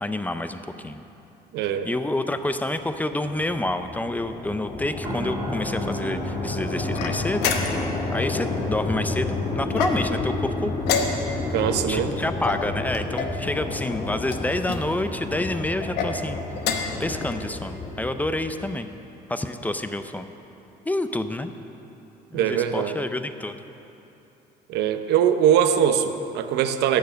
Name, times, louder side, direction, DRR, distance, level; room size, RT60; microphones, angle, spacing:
voice 1, 0.0-1.0 1.8-7.8 8.1-10.8 11.9-16.4 17.0-18.9 19.3-20.2 20.9-21.5 22.3-23.6, left 1 dB, 10° left, 9 dB, 0.5 m, -28 dB
voice 2, 1.5-1.9 11.5-12.2 22.3-23.0 24.7-27.0, right 9 dB, 85° right, 9 dB, 0.7 m, -22 dB
sound 1, 2.4-18.7, left 2 dB, 45° left, 2.2 m, -31 dB
sound 2, 5.0-19.0 19.4-19.6, right 1 dB, 25° right, 2.0 m, -39 dB
sound 3, 6.9-8.0 9.7-10.3 10.8-11.5 12.4-13.4 14.3-14.8 15.8-16.1 16.6-17.0, left 6 dB, 80° left, 1.0 m, -28 dB
11.5 x 6.7 x 8.1 m, 2.9 s
cardioid pair, 110°, 17 cm